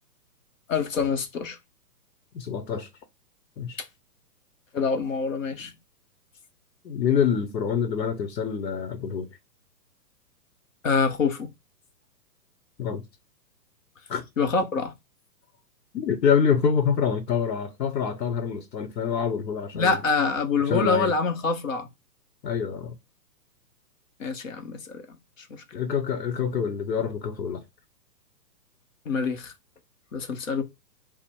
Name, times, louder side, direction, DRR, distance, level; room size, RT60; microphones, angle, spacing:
voice 1, 0.7-1.6 4.7-5.7 10.8-11.5 14.4-14.9 19.7-21.9 24.2-25.0 29.1-29.5 30.1-30.6, left 5 dB, 50° left, 0.7 m, -25 dB
voice 2, 2.3-2.9 3.6-3.8 6.8-9.3 12.8-13.0 14.1-14.2 15.9-20.0 20.6-21.1 22.4-23.0 25.7-27.6, left 7 dB, 85° left, 0.9 m, -26 dB
4.3 x 2.0 x 4.5 m
hypercardioid pair, 175°, 49 cm